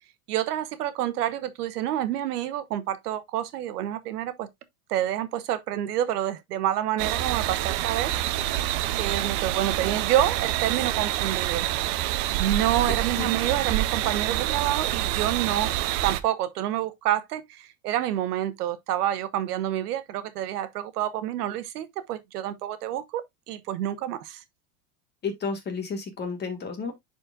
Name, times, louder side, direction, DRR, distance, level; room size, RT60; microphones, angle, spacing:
voice 1, 0.3-4.5 4.9-8.1 9.0-11.7 12.4-15.7 16.0-24.4, right 12 dB, 90° right, 1.2 m, -28 dB
sound 1, 7.0-16.2, right 14 dB, 45° right, 0.7 m, -27 dB
voice 2, 12.9-13.3 25.2-26.9, left 5 dB, 20° left, 1.7 m, -32 dB
10.0 x 4.4 x 2.4 m
supercardioid pair, 150°, 45 cm